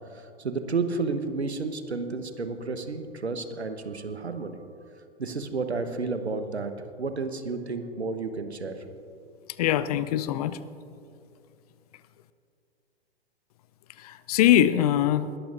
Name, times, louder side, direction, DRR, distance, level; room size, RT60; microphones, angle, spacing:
voice 1, 0.1-4.6 5.2-6.7 7.0-8.8, right 4 dB, 85° right, 8 dB, 1.1 m, -31 dB
voice 2, 9.6-10.6 14.0-15.3, left 11 dB, 40° left, 15 dB, 0.5 m, -22 dB
21.0 x 13.0 x 2.6 m, 2.5 s
figure-of-eight pair, 105°, 32 cm